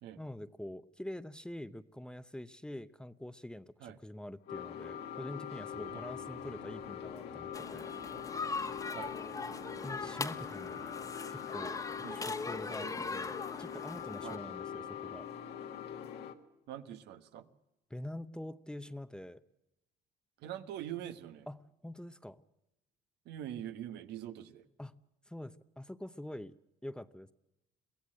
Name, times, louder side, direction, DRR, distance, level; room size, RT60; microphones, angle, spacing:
voice 1, 0.2-7.9 9.8-10.8 11.3-11.8 12.1-15.2 17.9-19.4 21.5-22.4 24.8-25.0 25.3-26.5 26.8-27.3, left 1 dB, 5° left, 13 dB, 0.7 m, -45 dB
sound 1, 4.5-16.4, left 8 dB, 75° left, 1.8 m, -43 dB
sound 2, 5.7-11.1, right 6 dB, 60° right, 4.4 m, -58 dB
sound 3, 7.5-14.4, left 4 dB, 20° left, 1.2 m, -40 dB
voice 2, 16.7-17.5 20.4-21.5 23.2-24.6, right 11 dB, 80° right, 9 dB, 1.4 m, -43 dB
23.0 x 16.0 x 7.6 m, 0.90 s
cardioid pair, 110°, 17 cm